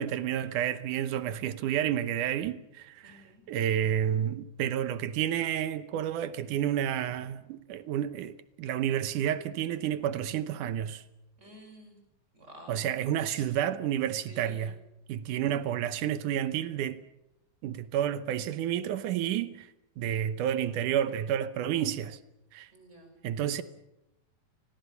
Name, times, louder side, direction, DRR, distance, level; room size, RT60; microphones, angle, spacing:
voice 1, 0.0-11.0 12.7-14.8 15.1-17.0 17.6-19.7 20.0-22.2 22.5-22.7 23.2-23.6, right 10 dB, 70° right, 2.1 m, -30 dB
voice 2, 3.0-3.4 11.4-12.0 12.3-12.9 13.3-13.4 14.3-14.7 22.7-23.1, equal, 15° right, 6.3 m, -51 dB
29.5 x 19.5 x 7.0 m
omnidirectional pair, 4.4 m